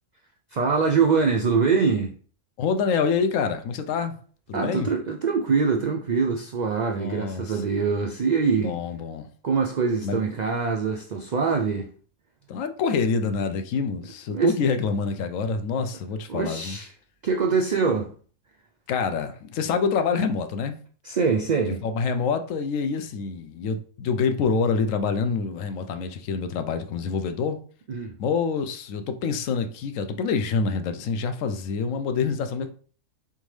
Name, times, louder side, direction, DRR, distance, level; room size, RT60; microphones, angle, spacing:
voice 1, 0.5-2.1 4.5-8.8 9.4-11.9 14.3-14.5 16.3-16.9 17.2-18.1 21.0-21.8 27.9-28.2, right 5 dB, 80° right, 0.4 m, -24 dB
voice 2, 2.6-4.2 4.5-4.9 6.9-7.5 8.6-9.3 10.0-10.2 12.5-16.8 18.9-20.8 21.8-27.6 28.2-32.7, left 5 dB, 80° left, 1.0 m, -26 dB
4.1 x 3.5 x 3.2 m
omnidirectional pair, 1.4 m